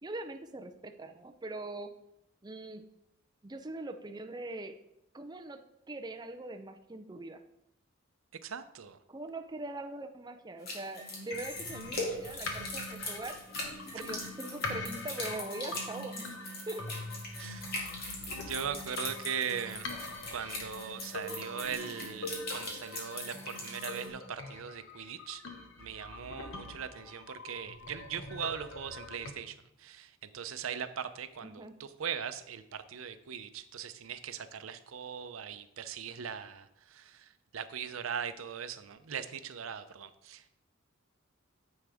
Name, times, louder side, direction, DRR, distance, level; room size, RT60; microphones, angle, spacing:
voice 1, 0.0-1.9 2.4-2.8 3.4-4.8 5.1-5.6 5.9-7.4 9.1-13.3 13.9-16.4 16.7-17.0 31.4-31.7, right 2 dB, 20° right, 6 dB, 0.5 m, -42 dB
voice 2, 8.4-9.0 17.4-17.8 18.4-19.9 20.3-25.4 25.8-40.4, right 7 dB, 85° right, 11 dB, 0.6 m, -40 dB
sound 1, 10.7-24.1, left 2 dB, 50° left, 2.3 m, -41 dB
sound 2, 11.3-29.3, left 2 dB, 70° left, 1.2 m, -44 dB
9.6 x 7.1 x 3.4 m, 0.82 s
head